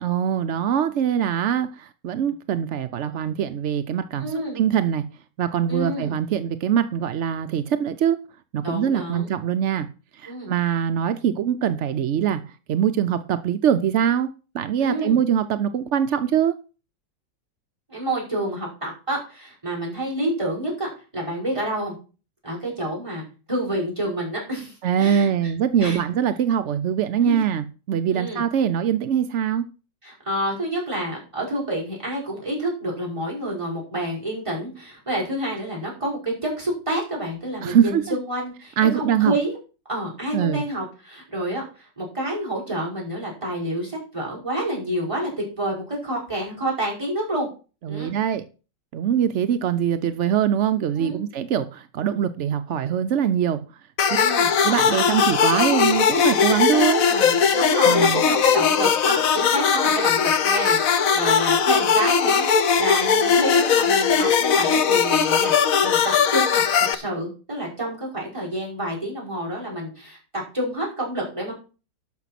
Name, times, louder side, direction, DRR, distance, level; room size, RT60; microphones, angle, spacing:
voice 1, 0.0-5.1 5.4-8.2 8.5-9.9 10.1-12.4 12.7-16.6 24.8-29.6 37.6-38.2 38.8-39.3 40.3-40.6 47.8-48.4 48.9-53.6 54.6-57.0 57.8-58.2, right 9 dB, 70° right, 10 dB, 0.7 m, -23 dB
voice 2, 4.2-4.6 5.7-6.2 8.6-9.3 10.3-10.5 14.8-15.2 17.9-21.9 22.4-25.3 25.8-26.0 27.2-27.4 28.1-28.4 30.0-39.6 39.9-47.5 47.9-48.1 51.0-51.2 54.1-54.5 57.0-71.5, right 1 dB, 15° right, -4 dB, 5.4 m, -29 dB
sound 1, 54.0-66.9, left 6 dB, 55° left, 1.2 m, -19 dB
12.0 x 6.1 x 5.8 m, 0.35 s
omnidirectional pair, 1.9 m